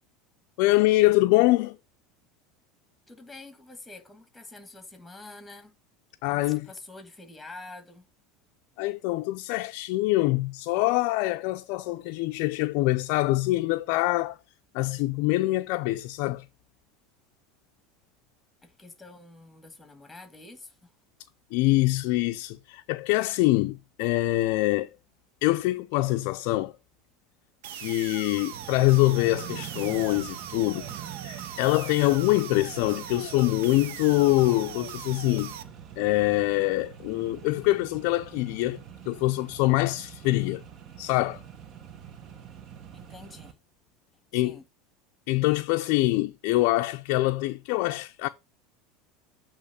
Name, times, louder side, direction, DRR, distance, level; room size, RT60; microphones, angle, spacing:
voice 1, 0.6-1.8 6.2-6.7 8.8-14.4 14.7-16.4 21.5-24.9 25.4-26.7 27.7-30.9 31.2-35.5 36.0-40.6 41.0-41.4 44.3-44.6 45.3-48.3, left 19 dB, 65° left, 0.4 m, -24 dB
voice 2, 3.1-5.7 6.3-8.0 18.6-20.9 42.9-43.6 44.3-44.7, left 2 dB, 5° left, 1.6 m, -46 dB
sound 1, 27.6-35.6, right 10 dB, 80° right, 0.7 m, -40 dB
Accelerating revving vroom, 28.5-43.5, right 8 dB, 45° right, 1.0 m, -45 dB
8.2 x 3.0 x 5.5 m
supercardioid pair, 120°, 0 cm